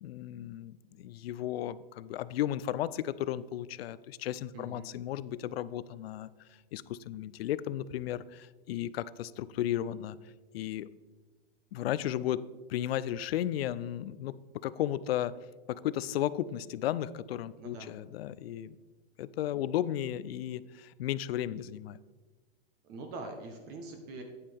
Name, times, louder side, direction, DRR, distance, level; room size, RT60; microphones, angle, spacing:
voice 1, 0.0-6.3 6.7-10.2 10.5-10.9 11.7-15.4 15.7-18.8 19.2-22.0, left 12 dB, 80° left, 17 dB, 0.5 m, -34 dB
voice 2, 4.5-4.9 17.5-17.9 22.8-24.2, right 3 dB, 35° right, 5 dB, 1.1 m, -43 dB
9.5 x 8.5 x 3.5 m, 1.3 s
supercardioid pair, 150°, 30 cm